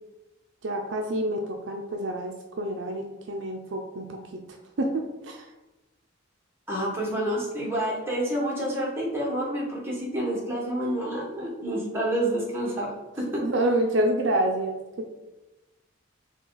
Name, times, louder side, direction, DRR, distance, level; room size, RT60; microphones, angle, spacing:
voice 1, 0.6-4.2 4.8-5.5 13.4-14.8, right 1 dB, 60° right, 2 dB, 0.5 m, -27 dB
voice 2, 6.7-12.9 13.2-13.4, right 1 dB, 10° right, -4 dB, 1.1 m, -28 dB
5.7 x 2.3 x 3.8 m, 1.0 s
head